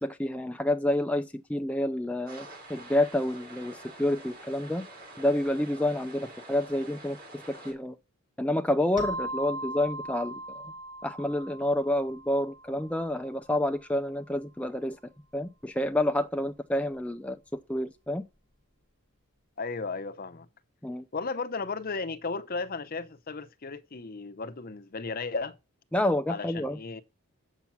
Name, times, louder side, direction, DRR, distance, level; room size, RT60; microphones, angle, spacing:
voice 1, 0.0-4.8 5.2-7.2 7.5-8.0 8.4-10.6 11.0-15.0 15.3-18.2 20.8-21.1 25.9-26.8, left 1 dB, 5° left, 0.4 m, -29 dB
sound 1, 2.3-7.7, right 1 dB, 45° right, 3.6 m, -47 dB
sound 2, 9.0-13.4, right 1 dB, 20° right, 2.7 m, -39 dB
voice 2, 19.6-20.5 21.1-25.6 26.3-27.0, left 4 dB, 40° left, 0.7 m, -35 dB
8.2 x 6.0 x 5.7 m
head